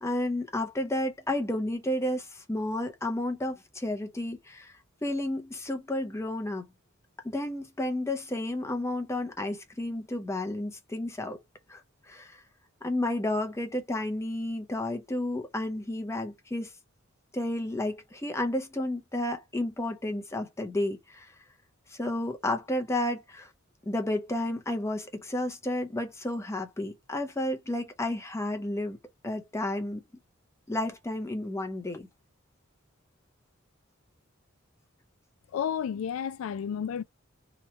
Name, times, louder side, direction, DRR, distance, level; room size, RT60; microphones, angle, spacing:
voice 1, 0.0-4.7 5.0-6.7 7.2-11.4 11.7-11.8 12.1-12.4 12.8-16.7 17.3-21.3 21.9-23.5 23.9-29.0 29.2-30.0 30.7-32.1, left 1 dB, 15° left, 0.6 m, -31 dB
voice 2, 35.5-37.0, left 8 dB, 70° left, 0.3 m, -31 dB
3.0 x 2.3 x 4.2 m
head